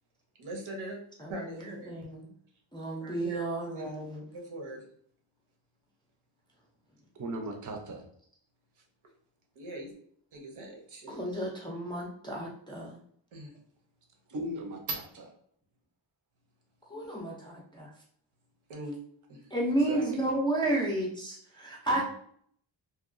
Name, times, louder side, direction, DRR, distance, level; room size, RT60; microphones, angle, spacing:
voice 1, 0.4-1.0 1.3-2.0 3.0-4.0 4.3-4.8 9.6-9.9 10.3-11.2 13.3-13.5 18.7-19.0 19.3-19.5, right 1 dB, 80° right, 1 dB, 0.9 m, -41 dB
voice 2, 1.2-2.3 2.7-4.2 11.1-13.0 16.9-17.9 19.5-22.0, right 1 dB, 10° left, -4 dB, 0.3 m, -32 dB
voice 3, 7.1-8.1 14.3-15.3 19.7-20.3 21.9-22.0, right 2 dB, 40° right, 2 dB, 0.5 m, -37 dB
2.8 x 2.2 x 2.5 m, 0.63 s
wide cardioid pair, 155°, 48 cm